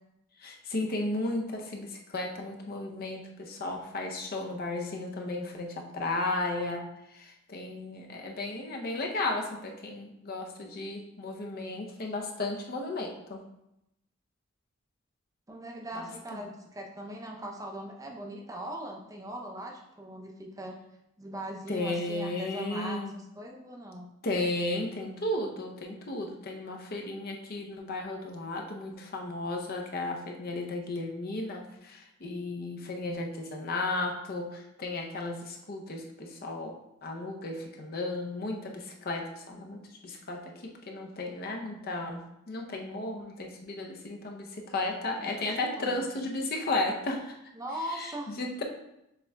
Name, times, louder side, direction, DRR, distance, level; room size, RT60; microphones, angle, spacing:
voice 1, 0.4-6.8 7.1-13.4 15.9-16.5 21.7-23.2 24.2-36.8 37.0-40.5 40.9-42.2 42.5-47.4 47.9-48.6, left 2 dB, 50° left, 2 dB, 0.6 m, -34 dB
voice 2, 15.5-20.8 21.2-24.1 45.2-45.4 45.7-46.2 47.5-48.3, right 1 dB, 15° right, 0 dB, 0.5 m, -40 dB
6.7 x 3.5 x 2.2 m, 0.85 s
head